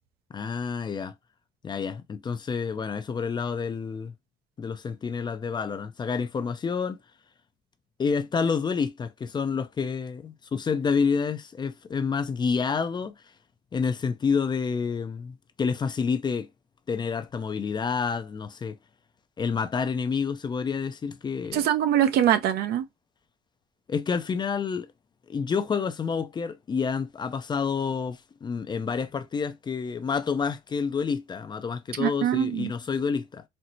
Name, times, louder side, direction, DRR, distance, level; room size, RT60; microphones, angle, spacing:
voice 1, 0.3-1.1 1.6-4.1 4.6-7.0 8.0-13.1 13.7-16.5 16.9-18.8 19.4-21.6 23.9-24.9 25.3-33.4, left 5 dB, 25° left, 0.4 m, -28 dB
voice 2, 21.5-22.8 32.0-32.7, right 10 dB, 70° right, 0.6 m, -23 dB
4.3 x 2.0 x 2.6 m
cardioid pair, 110°, 17 cm